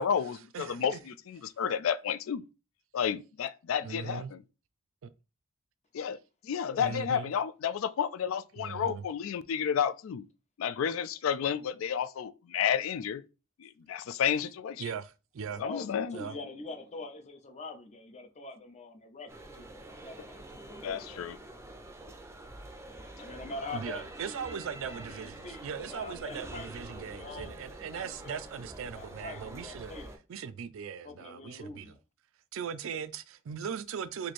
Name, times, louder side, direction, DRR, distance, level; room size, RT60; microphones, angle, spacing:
voice 1, 0.0-2.4 2.9-4.4 5.9-6.2 6.4-10.3 10.6-13.2 13.6-14.8 15.6-16.2 20.8-21.4, left 8 dB, 70° left, 0.4 m, -31 dB
voice 2, 0.5-1.0 3.8-4.3 5.0-5.1 6.8-7.3 8.6-9.0 14.8-15.6 16.1-16.4 23.7-29.9 30.3-31.9 32.5-34.3, right 7 dB, 70° right, 0.4 m, -39 dB
voice 3, 15.5-21.2 23.2-28.4 28.9-30.2 31.0-32.0, left 3 dB, 35° left, 0.7 m, -44 dB
sound 1, 19.3-30.2, right 2 dB, 15° right, 0.5 m, -46 dB
3.1 x 2.7 x 4.1 m
head